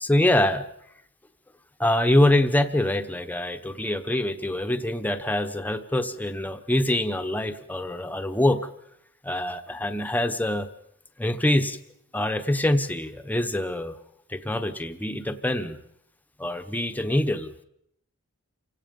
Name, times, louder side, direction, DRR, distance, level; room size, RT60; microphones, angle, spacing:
voice 1, 0.0-0.7 1.8-8.7 9.2-10.7 11.2-11.8 12.1-14.0 14.3-15.8 16.4-17.5, left 1 dB, 10° left, 8 dB, 1.0 m, -24 dB
28.5 x 17.0 x 5.4 m, 0.73 s
head